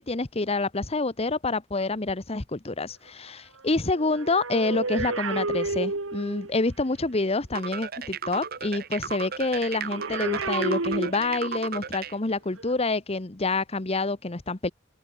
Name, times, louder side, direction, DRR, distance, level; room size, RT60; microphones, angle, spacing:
voice 1, 0.0-14.7, left 3 dB, 30° left, 1.0 m, -27 dB
sound 1, 3.8-6.6 9.7-11.7 12.5-12.7, right 3 dB, 85° right, 2.3 m, -31 dB
sound 2, 7.5-12.1, right 7 dB, 50° right, 1.4 m, -34 dB
open air
head